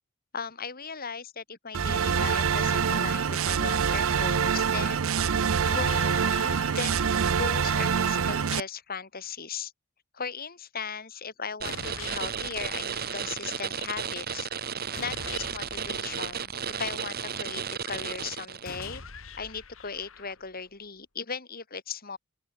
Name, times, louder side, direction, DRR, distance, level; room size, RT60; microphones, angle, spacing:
voice 1, 0.3-5.1 5.7-9.7 10.1-14.5 15.0-16.5 16.8-19.0 19.4-22.2, left 5 dB, 45° left, 4.3 m, -37 dB
sound 1, 1.7-8.6, right 6 dB, 80° right, 0.6 m, -25 dB
sound 2, 5.6-7.7 11.6-13.7 14.9-17.0 18.6-20.7, left 5 dB, 70° left, 2.2 m, -44 dB
sound 3, 11.6-18.9, right 7 dB, 50° right, 1.8 m, -34 dB
open air
head